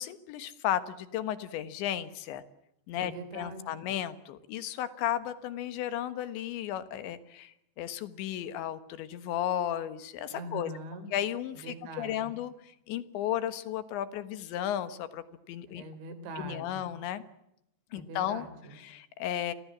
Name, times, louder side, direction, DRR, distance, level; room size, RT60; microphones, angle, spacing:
voice 1, 0.0-2.4 2.9-10.7 11.1-12.5 12.9-15.8 16.4-17.2 17.9-18.5 18.8-19.5, left 11 dB, 80° left, 13 dB, 3.7 m, -34 dB
voice 2, 2.9-3.6 10.3-11.1 11.6-12.1 15.7-16.8 17.9-18.8, right 2 dB, 80° right, 11 dB, 6.1 m, -42 dB
29.5 x 23.0 x 7.4 m, 0.83 s
omnidirectional pair, 5.2 m